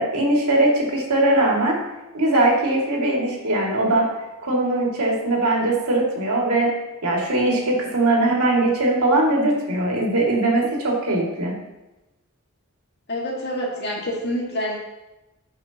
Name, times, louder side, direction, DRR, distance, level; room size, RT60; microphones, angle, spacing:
voice 1, 0.0-1.8 2.1-4.1 4.4-6.7 7.0-11.5, right 2 dB, 90° right, -2 dB, 2.4 m, -20 dB
voice 2, 13.1-14.8, equal, 50° left, -2 dB, 1.9 m, -27 dB
15.5 x 5.7 x 2.9 m, 0.99 s
head